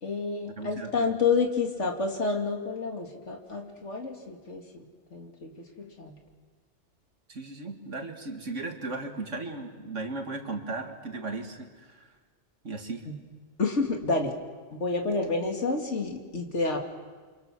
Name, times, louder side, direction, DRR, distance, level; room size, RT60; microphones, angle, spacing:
voice 1, 0.0-6.2 13.1-13.2 13.6-14.3 14.7-16.8, left 4 dB, 75° left, 2 dB, 2.7 m, -29 dB
voice 2, 0.6-1.1 7.3-12.1 12.6-13.1, right 3 dB, 85° right, 4 dB, 2.4 m, -36 dB
29.5 x 25.5 x 6.3 m, 1.4 s
omnidirectional pair, 1.2 m